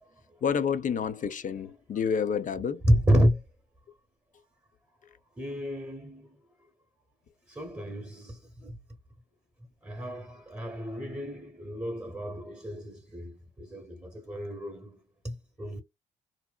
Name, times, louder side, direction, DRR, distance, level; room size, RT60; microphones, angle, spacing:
voice 1, 0.4-2.8, left 7 dB, 45° left, 0.6 m, -29 dB
voice 2, 2.8-3.4 5.4-6.3 7.5-8.8 9.8-15.0 15.2-15.8, equal, 15° right, 0.9 m, -30 dB
2.7 x 2.0 x 2.2 m
hypercardioid pair, 55°, 19 cm